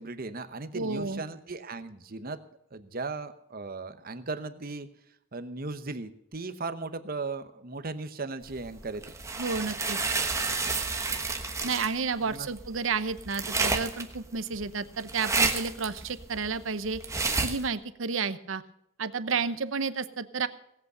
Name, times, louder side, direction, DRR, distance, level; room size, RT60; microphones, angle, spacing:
voice 1, 0.0-2.4 2.7-4.9 5.3-9.0 12.2-12.5, right 3 dB, 45° right, 11 dB, 1.0 m, -37 dB
voice 2, 0.7-1.2 9.4-10.0 11.6-17.0 17.4-18.6 19.0-20.5, right 5 dB, 70° right, 13 dB, 0.8 m, -31 dB
sound 1, 8.5-17.7, right 4 dB, 15° right, 1.2 m, -31 dB
18.0 x 8.2 x 6.7 m, 0.76 s
head